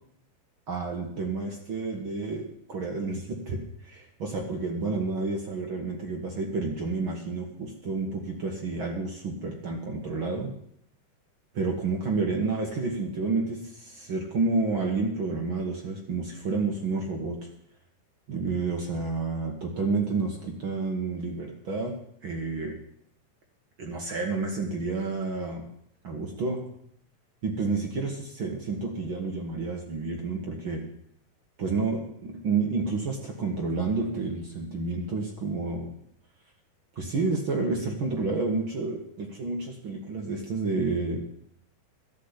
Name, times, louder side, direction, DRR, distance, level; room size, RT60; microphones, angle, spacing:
voice 1, 0.7-10.5 11.5-17.5 18.3-22.7 23.8-25.6 26.0-26.6 27.4-30.8 31.6-35.9 36.9-41.2, right 3 dB, 60° right, 1 dB, 1.3 m, -30 dB
12.0 x 7.5 x 9.7 m, 0.68 s
omnidirectional pair, 4.6 m